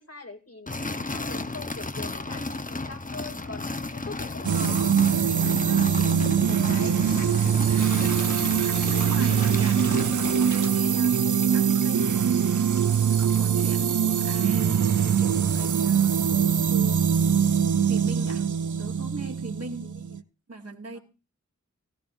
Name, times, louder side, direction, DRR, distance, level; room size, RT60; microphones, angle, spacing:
voice 1, 0.0-8.0 9.7-9.8 19.8-20.0 20.9-21.0, left 3 dB, 55° left, 2.6 m, -43 dB
sound 1, 0.7-10.7, left 2 dB, 25° left, 0.9 m, -34 dB
sound 2, 4.4-20.2, right 7 dB, 90° right, 0.6 m, -23 dB
voice 2, 5.2-5.6 8.0-12.5 13.2-17.0 17.8-18.5 18.8-19.9 20.5-21.0, right 3 dB, 55° right, 2.3 m, -41 dB
Hiss / Toilet flush / Trickle dribble, 7.8-18.1, right 4 dB, 75° right, 1.3 m, -41 dB
17.5 x 17.0 x 2.6 m
wide cardioid pair, 60°, 30 cm